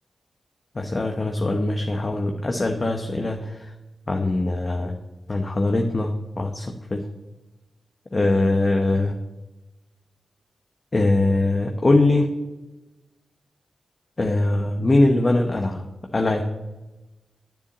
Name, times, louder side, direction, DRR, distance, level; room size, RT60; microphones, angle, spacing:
voice 1, 0.7-3.7 4.1-4.9 5.3-7.1 8.1-9.1 10.9-12.3 14.2-15.8 16.1-16.4, left 2 dB, 35° left, 3 dB, 1.0 m, -22 dB
9.8 x 7.2 x 7.4 m, 1.1 s
cardioid pair, 75°, 0 cm